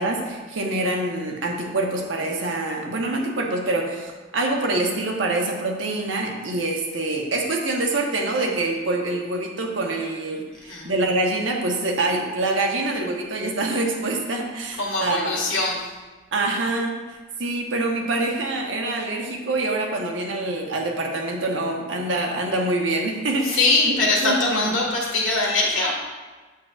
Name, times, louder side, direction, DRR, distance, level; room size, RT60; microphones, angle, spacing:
voice 1, 0.0-15.4 16.3-16.9 17.4-24.8, right 2 dB, 75° right, 1 dB, 1.1 m, -25 dB
voice 2, 10.6-10.9 14.8-15.9 23.4-25.9, left 2 dB, 75° left, -2 dB, 1.8 m, -22 dB
8.0 x 7.7 x 2.4 m, 1.3 s
head